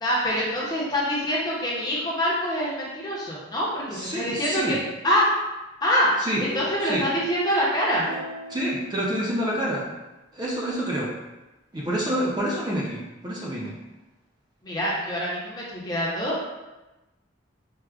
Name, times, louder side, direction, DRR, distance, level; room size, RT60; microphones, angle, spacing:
voice 1, 0.0-4.8 5.0-5.4 5.8-8.1 14.6-16.4, equal, 20° left, -5 dB, 0.6 m, -25 dB
voice 2, 3.9-4.8 6.2-6.4 6.8-7.1 8.5-9.9 10.3-11.1 11.7-13.7, equal, 20° right, -5 dB, 0.4 m, -27 dB
sound 1, 6.3-9.7, left 2 dB, 75° left, 0.7 m, -40 dB
4.6 x 2.0 x 2.3 m, 1.1 s
head